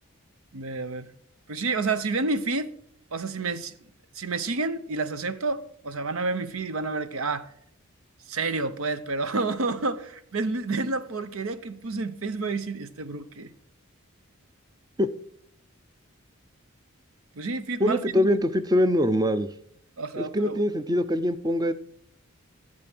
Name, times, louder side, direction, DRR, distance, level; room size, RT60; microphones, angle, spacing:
voice 1, 0.5-1.1 1.5-2.7 3.1-3.7 4.2-7.5 8.3-13.5 17.4-18.3 20.0-20.6, right 3 dB, 75° right, 0.8 m, -29 dB
voice 2, 17.8-19.5 20.2-21.7, left 1 dB, 20° right, 0.5 m, -23 dB
12.5 x 7.6 x 6.1 m
head